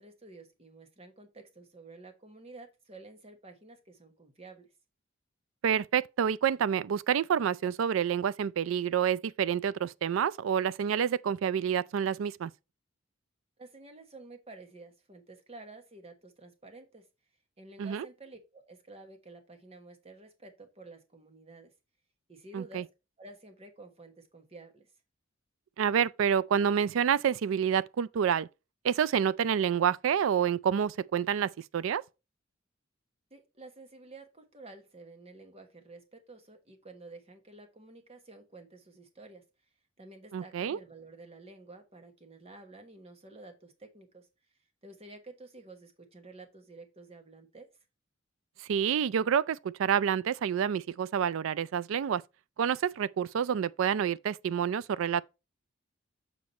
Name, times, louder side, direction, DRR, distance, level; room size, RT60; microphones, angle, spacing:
voice 1, 0.0-4.7 13.6-17.0 17.6-21.7 22.3-22.9 23.2-24.9 33.3-39.4 40.0-44.3 44.8-47.7, right 2 dB, 30° right, 1.2 m, -51 dB
voice 2, 5.6-12.5 17.8-18.1 22.5-22.8 25.8-28.5 28.8-32.0 40.3-40.8 48.7-52.2 52.6-55.2, right 8 dB, 90° right, 0.3 m, -28 dB
7.1 x 4.7 x 4.1 m
head